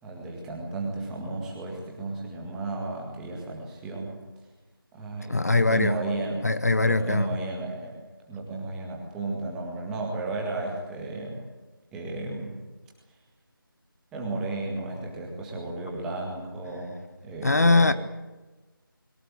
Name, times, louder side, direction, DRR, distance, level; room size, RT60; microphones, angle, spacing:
voice 1, 0.0-4.1 4.9-6.5 6.8-7.9 8.2-11.4 11.9-12.6 14.1-17.0 17.2-17.9, right 2 dB, 5° right, 1.9 m, -33 dB
voice 2, 5.3-6.0 6.4-7.4 17.4-17.9, left 3 dB, 45° left, 0.7 m, -21 dB
22.0 x 20.0 x 7.8 m
figure-of-eight pair, 170°, 12 cm